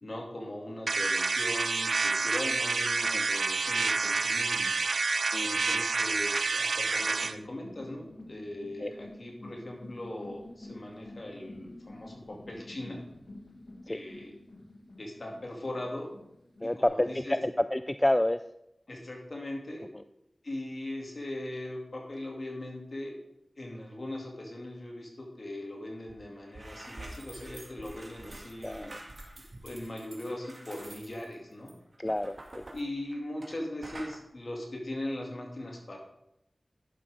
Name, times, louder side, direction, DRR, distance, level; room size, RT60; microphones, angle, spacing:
voice 1, 0.0-4.8 5.4-13.0 13.9-14.3 15.0-16.1 16.6-17.4 18.9-19.9 20.4-23.2 23.6-29.0 29.6-31.7 32.7-36.0, left 1 dB, 55° left, -1 dB, 2.6 m, -40 dB
sound 1, 0.9-7.4, right 4 dB, 90° right, 0.4 m, -28 dB
sound 2, 6.8-16.8, left 1 dB, 80° left, 1.7 m, -49 dB
voice 2, 16.6-18.4 28.6-29.0 32.0-32.6, left 1 dB, 20° left, 11 dB, 0.3 m, -29 dB
sound 3, 26.1-26.2 26.4-33.6 33.8-34.2, right 1 dB, 50° right, 1.9 m, -47 dB
11.0 x 5.9 x 4.9 m, 0.82 s
wide cardioid pair, 65°, 0 cm